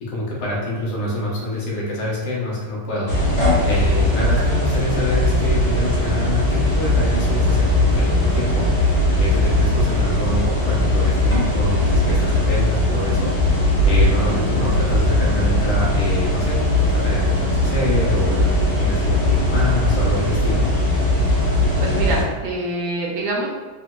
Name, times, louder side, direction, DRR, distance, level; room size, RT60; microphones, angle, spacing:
voice 1, 0.1-8.7 9.2-20.6, left 1 dB, 80° left, -4 dB, 1.8 m, -26 dB
sound 1, 3.1-22.2, left 1 dB, 40° left, 1.7 m, -19 dB
voice 2, 21.8-23.5, right 2 dB, 70° right, -2 dB, 1.4 m, -25 dB
3.8 x 3.5 x 2.2 m, 1.4 s
omnidirectional pair, 2.3 m